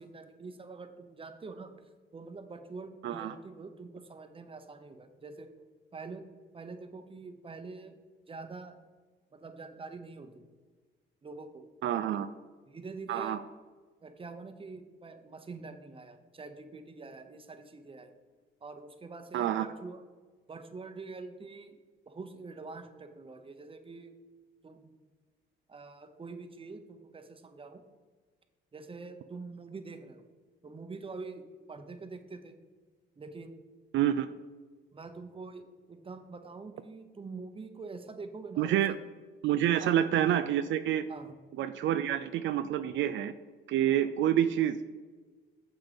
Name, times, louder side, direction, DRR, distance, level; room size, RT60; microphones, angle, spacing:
voice 1, 0.0-1.7 2.1-5.5 5.9-6.3 6.5-8.0 8.3-8.7 9.3-10.4 11.2-11.7 12.0-12.3 12.7-13.4 14.0-18.1 18.6-20.0 20.5-21.8 22.1-24.1 24.6-24.9 25.7-27.8 28.7-30.2 30.6-32.6 33.2-33.6 34.9-39.0 39.7-39.9 41.1-41.3 43.9-44.0, right 4 dB, 25° right, 7 dB, 0.9 m, -45 dB
voice 2, 3.0-3.3 11.8-12.3 13.1-13.4 19.3-19.7 33.9-34.3 38.6-39.0 39.4-41.1 41.6-43.3 43.7-44.8, right 11 dB, 70° right, 10 dB, 0.4 m, -28 dB
7.0 x 6.0 x 5.2 m, 1.4 s
cardioid pair, 90°, 20 cm